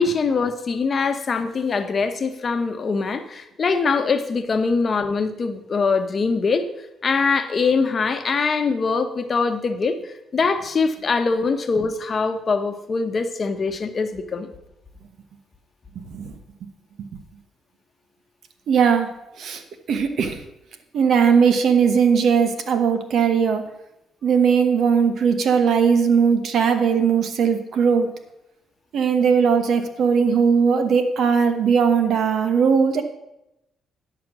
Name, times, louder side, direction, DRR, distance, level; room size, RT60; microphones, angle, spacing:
voice 1, 0.0-6.7 7.0-10.0 10.3-14.5, left 4 dB, 40° left, 8 dB, 1.0 m, -23 dB
voice 2, 18.7-19.1 19.4-19.6 19.9-20.4 20.9-23.7 24.2-28.1 28.9-33.0, right 6 dB, 65° right, 8 dB, 1.1 m, -19 dB
10.5 x 5.8 x 6.0 m, 0.88 s
cardioid pair, 90°, 0 cm